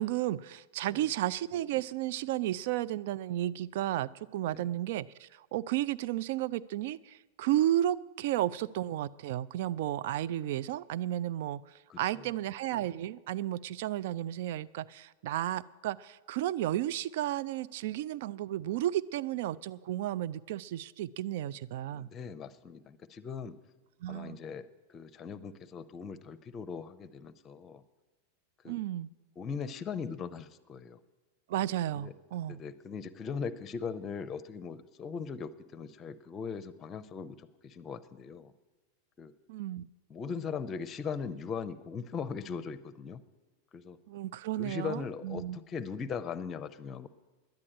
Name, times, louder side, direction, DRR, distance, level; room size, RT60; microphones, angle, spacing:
voice 1, 0.0-22.1 24.0-24.4 28.7-29.1 31.5-32.6 39.5-39.9 44.1-45.6, right 13 dB, 50° right, 18 dB, 0.4 m, -33 dB
voice 2, 11.9-12.3 21.9-23.6 24.1-27.8 28.6-28.8 29.4-31.0 31.9-32.1 32.5-38.5 39.2-39.3 40.1-43.2 43.7-44.0 44.6-47.1, left 6 dB, 25° left, 14 dB, 0.7 m, -39 dB
10.5 x 9.8 x 8.7 m, 1.2 s
figure-of-eight pair, 90°, 0 cm